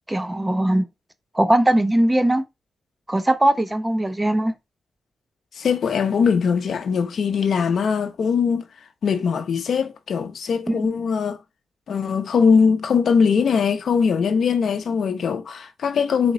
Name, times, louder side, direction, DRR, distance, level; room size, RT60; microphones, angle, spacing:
voice 1, 0.1-0.9 1.3-2.4 3.1-4.5 10.7-10.9, right 1 dB, 15° right, 0.6 m, -20 dB
voice 2, 5.6-8.7 9.0-11.4 11.9-16.3, left 6 dB, 70° left, 0.7 m, -21 dB
4.2 x 2.9 x 3.9 m
cardioid pair, 80°, 0 cm